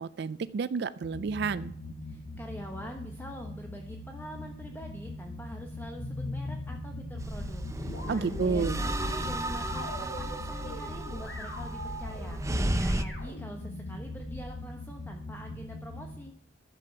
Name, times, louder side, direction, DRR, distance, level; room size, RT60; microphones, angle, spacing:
voice 1, 0.0-1.7 8.1-8.8, right 5 dB, 60° right, 15 dB, 0.4 m, -30 dB
sound 1, 1.0-16.2, left 1 dB, 50° left, 1.2 m, -42 dB
voice 2, 2.1-16.3, equal, 10° left, 3 dB, 1.0 m, -45 dB
sound 2, 6.0-14.6, left 1 dB, 75° left, 5.5 m, -43 dB
sound 3, 7.2-13.0, right 1 dB, 15° right, 0.7 m, -33 dB
12.0 x 7.6 x 6.8 m, 0.71 s
head